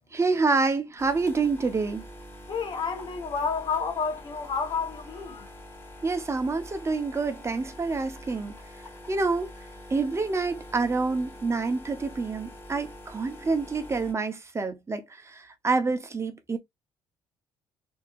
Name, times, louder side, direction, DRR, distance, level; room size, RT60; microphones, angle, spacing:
voice 1, 0.1-2.1 6.0-8.5 9.1-9.5 9.9-16.6, right 4 dB, 25° right, 0.8 m, -27 dB
sound 1, 1.0-14.1, left 1 dB, 20° left, 2.6 m, -45 dB
voice 2, 2.5-5.5, left 5 dB, 50° left, 1.0 m, -30 dB
4.2 x 2.8 x 2.4 m
supercardioid pair, 80°, 10 cm